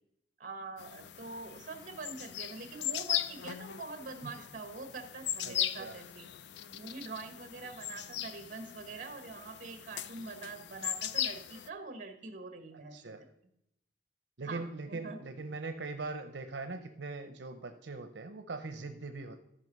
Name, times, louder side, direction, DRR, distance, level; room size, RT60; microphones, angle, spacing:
voice 1, 0.4-6.3 6.7-13.2 14.4-15.2, right 3 dB, 45° right, 7 dB, 1.3 m, -44 dB
sound 1, 0.8-11.7, left 10 dB, 70° left, 0.4 m, -39 dB
voice 2, 5.4-5.9 12.9-13.2 14.4-19.4, right 3 dB, 75° right, 7 dB, 0.7 m, -41 dB
14.0 x 5.3 x 5.4 m, 0.77 s
head